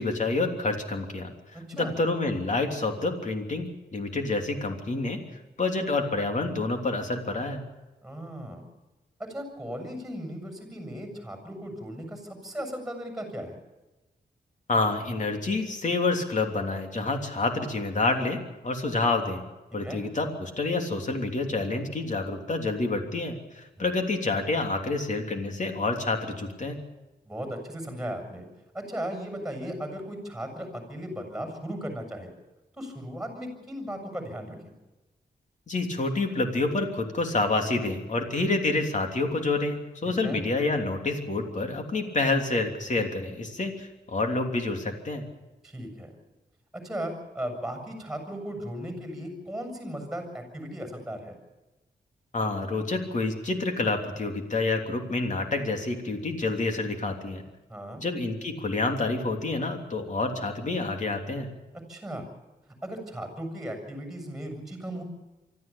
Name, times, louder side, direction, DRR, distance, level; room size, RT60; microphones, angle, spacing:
voice 1, 0.0-3.7 3.9-5.2 5.6-7.6 14.7-19.4 19.7-26.8 35.7-45.2 52.3-57.4 58.0-61.5, left 3 dB, 45° left, 4 dB, 3.2 m, -28 dB
voice 2, 1.5-2.0 8.0-8.6 9.2-13.6 19.8-20.0 23.8-24.0 27.3-28.4 28.7-32.3 32.8-34.6 40.1-40.4 45.6-46.2 46.8-51.4 57.7-58.0 61.9-62.3 62.8-65.0, equal, 5° right, 5 dB, 7.3 m, -36 dB
24.5 x 13.5 x 8.7 m, 1.1 s
wide cardioid pair, 110°, 17 cm